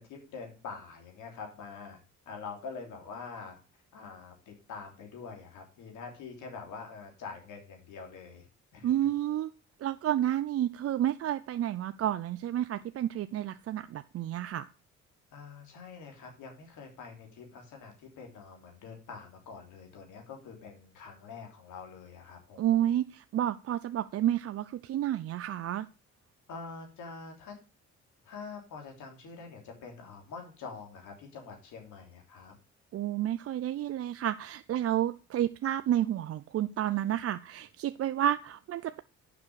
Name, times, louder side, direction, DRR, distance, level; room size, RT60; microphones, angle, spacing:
voice 1, 0.0-2.0 2.2-3.6 3.9-8.5 8.7-9.1 15.3-22.6 26.5-27.5 28.2-32.5, left 5 dB, 85° left, 3.1 m, -45 dB
voice 2, 8.8-9.5 9.8-14.7 22.6-25.9 32.9-39.0, right 11 dB, 50° right, 0.5 m, -30 dB
7.3 x 5.9 x 6.5 m
cardioid pair, 90°, 30 cm